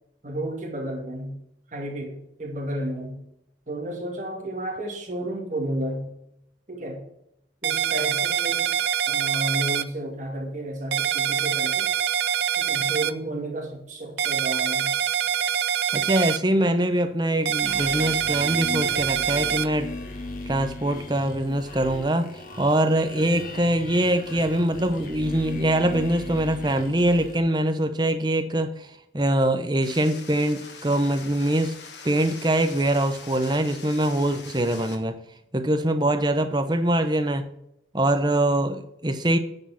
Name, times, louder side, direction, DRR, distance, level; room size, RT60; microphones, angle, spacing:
voice 1, 0.2-1.4 1.7-3.2 3.7-6.1 6.7-7.1 7.6-8.7 9.1-11.9 12.6-14.9, right 1 dB, 45° right, 2.3 m, -32 dB
sound 1, 7.6-9.8 10.9-13.1 14.2-16.4 17.4-19.7, right 9 dB, 75° right, 0.5 m, -25 dB
voice 2, 15.9-19.9 20.5-31.8 32.0-35.2 35.5-37.5 37.9-39.4, right 1 dB, 25° right, 0.8 m, -23 dB
sound 2, 17.6-27.4, left 2 dB, 50° left, 1.5 m, -38 dB
sound 3, 29.8-35.0, left 5 dB, 75° left, 1.5 m, -43 dB
9.5 x 4.9 x 5.8 m
head